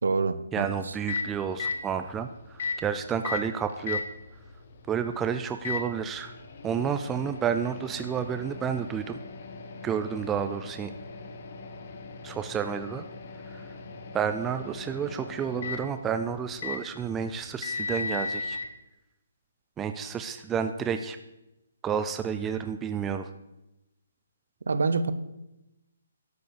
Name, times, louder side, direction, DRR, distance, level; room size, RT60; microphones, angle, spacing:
voice 1, 0.0-0.9 24.7-25.1, right 4 dB, 85° right, 14 dB, 0.8 m, -27 dB
voice 2, 0.5-4.0 4.9-6.3 6.6-9.2 9.8-10.9 12.2-13.0 13.5-13.7 14.1-18.6 19.8-21.2 21.8-23.3, right 7 dB, 10° right, 8 dB, 0.4 m, -30 dB
Microwave oven, 0.7-18.7, left 4 dB, 45° left, 1.2 m, -38 dB
12.0 x 5.4 x 6.6 m, 0.94 s
hypercardioid pair, 165°, 0 cm